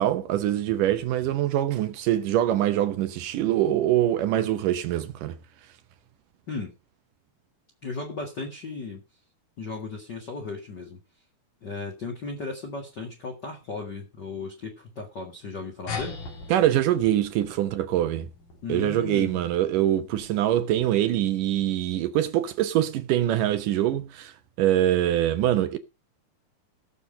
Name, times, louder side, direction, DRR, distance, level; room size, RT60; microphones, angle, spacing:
voice 1, 0.0-5.4 16.5-18.3 18.7-25.8, right 12 dB, 70° right, 2.2 m, -24 dB
voice 2, 7.8-9.0 9.6-11.0 11.6-16.2 18.6-19.4, left 3 dB, 40° left, 1.8 m, -35 dB
sound 1, 15.9-20.8, left 5 dB, 60° left, 4.0 m, -41 dB
16.5 x 6.8 x 5.0 m
omnidirectional pair, 4.3 m